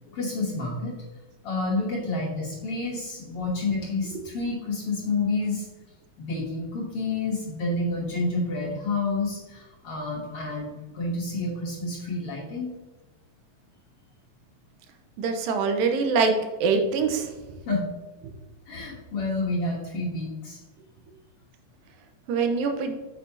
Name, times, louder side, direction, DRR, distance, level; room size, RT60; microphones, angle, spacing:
voice 1, 0.1-0.9 1.4-5.7 6.2-12.7 17.6-17.9 18.7-20.6, left 3 dB, 55° left, -3 dB, 1.7 m, -29 dB
voice 2, 15.2-16.3 16.6-17.3 22.3-23.0, right 5 dB, 85° right, 5 dB, 2.7 m, -23 dB
9.2 x 6.6 x 2.7 m, 1.2 s
omnidirectional pair, 4.0 m